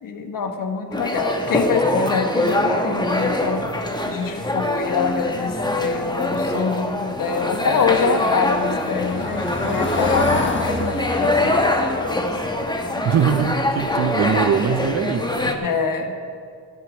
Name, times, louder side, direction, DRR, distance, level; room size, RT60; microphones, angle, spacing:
voice 1, 0.0-3.6 4.1-12.2 12.9-13.0 15.6-16.1, left 5 dB, 65° left, 5 dB, 1.3 m, -25 dB
sound 1, 0.9-15.5, left 1 dB, 10° left, 1.1 m, -23 dB
Car passing by / Engine, 6.8-13.8 14.1-14.4 14.7-14.8, left 2 dB, 30° left, 1.2 m, -31 dB
voice 2, 13.0-15.5, right 8 dB, 45° right, 11 dB, 0.6 m, -22 dB
11.0 x 9.0 x 6.2 m, 2.1 s
cardioid pair, 75°, 36 cm